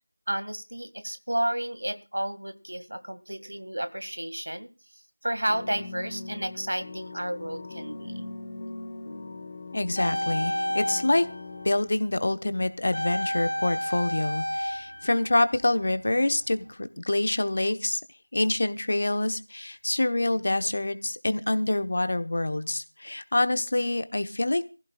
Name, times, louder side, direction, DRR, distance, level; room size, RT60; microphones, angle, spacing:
voice 1, 0.3-4.7 5.2-8.2, right 1 dB, 75° right, 10 dB, 2.1 m, -32 dB
sound 1, 5.5-11.7, left 3 dB, 20° left, 1.1 m, -40 dB
voice 2, 9.7-11.3 11.6-18.0 18.3-24.7, left 2 dB, 40° left, 10 dB, 1.1 m, -26 dB
sound 2, 10.0-12.0 12.9-16.0 16.3-16.5, equal, 80° left, 0.9 m, -31 dB
23.5 x 15.5 x 2.4 m, 0.32 s
figure-of-eight pair, 175°, 0 cm